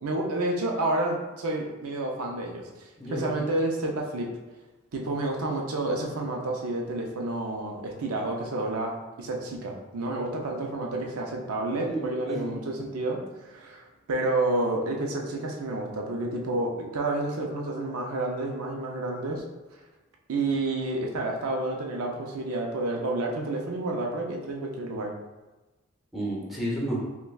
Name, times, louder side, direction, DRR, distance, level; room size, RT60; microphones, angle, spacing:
voice 1, 0.0-4.3 4.9-19.4 20.3-25.1, right 2 dB, 85° right, 1 dB, 0.5 m, -30 dB
voice 2, 3.0-3.4 11.8-12.5 26.1-27.0, right 1 dB, ahead, -7 dB, 1.0 m, -31 dB
5.7 x 2.2 x 2.3 m, 1.1 s
head